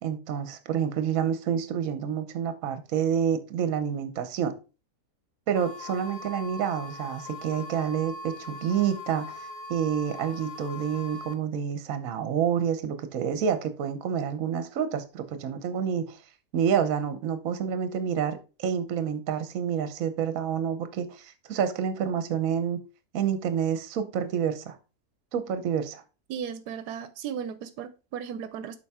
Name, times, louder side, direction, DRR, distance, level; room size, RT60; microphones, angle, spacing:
voice 1, 0.0-4.5 5.5-9.4 9.7-16.2 16.5-22.8 23.1-24.8 25.3-26.0, right 8 dB, 65° right, 1.2 m, -28 dB
sound 1, 5.6-11.3, left 2 dB, 70° left, 0.4 m, -41 dB
voice 2, 26.3-28.8, right 8 dB, 85° right, 1.1 m, -36 dB
7.0 x 4.8 x 3.5 m
omnidirectional pair, 1.7 m